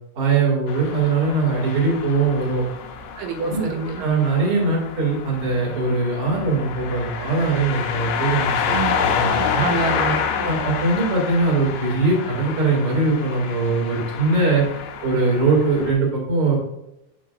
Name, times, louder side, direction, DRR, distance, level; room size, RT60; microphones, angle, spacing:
voice 1, 0.2-2.7 3.4-3.6 4.0-9.6 10.4-14.6 15.0-16.6, right 3 dB, 40° right, -3 dB, 2.4 m, -21 dB
sound 1, 0.7-15.9, left 7 dB, 80° left, 2.9 m, -28 dB
voice 2, 3.2-4.0 8.7-10.5, right 5 dB, 85° right, 4 dB, 3.0 m, -28 dB
7.5 x 5.8 x 2.5 m, 0.85 s
omnidirectional pair, 5.0 m